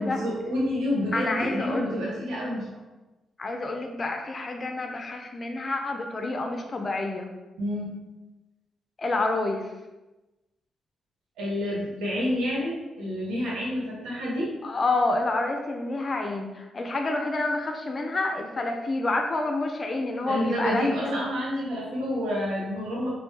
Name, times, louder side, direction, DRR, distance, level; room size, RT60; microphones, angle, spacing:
voice 1, 0.0-2.7 7.6-8.0 11.4-14.5 20.3-23.1, left 1 dB, 75° right, -5 dB, 1.0 m, -28 dB
voice 2, 1.1-1.9 3.4-7.3 9.0-9.7 14.6-21.1, left 2 dB, 40° left, 3 dB, 0.4 m, -28 dB
3.1 x 2.6 x 3.1 m, 1.1 s
hypercardioid pair, 40°, 0 cm